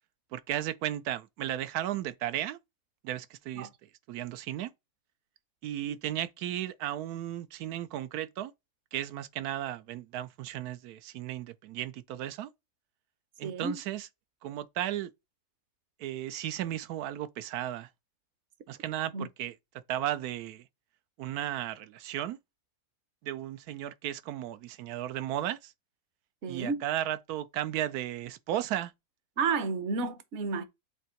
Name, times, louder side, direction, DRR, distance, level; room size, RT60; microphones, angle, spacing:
voice 1, 0.3-2.6 3.0-3.7 4.1-4.7 5.6-8.5 8.9-12.5 13.4-14.1 14.4-15.1 16.0-17.9 18.7-19.5 19.9-20.6 21.2-22.4 23.2-25.7 26.5-28.9, right 12 dB, 80° right, 1.1 m, -35 dB
voice 2, 13.4-13.8 19.1-19.3 26.4-26.8 29.4-30.6, right 4 dB, 55° right, 1.0 m, -31 dB
7.9 x 2.8 x 4.4 m
omnidirectional pair, 1.6 m